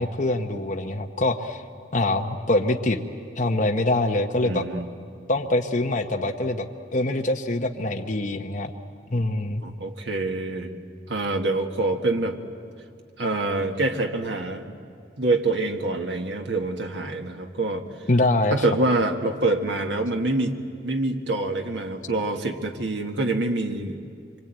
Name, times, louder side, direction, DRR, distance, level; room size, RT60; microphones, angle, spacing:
voice 1, 0.0-1.6 1.9-3.0 3.4-4.6 5.3-8.7 9.1-9.6 18.1-18.6, left 2 dB, 45° left, 3 dB, 1.0 m, -24 dB
voice 2, 4.4-4.8 9.6-10.7 11.1-12.4 13.2-14.7 15.2-17.8 18.5-20.6 20.8-24.0, right 2 dB, 75° right, 4 dB, 1.7 m, -26 dB
25.5 x 24.5 x 9.0 m, 2.3 s
head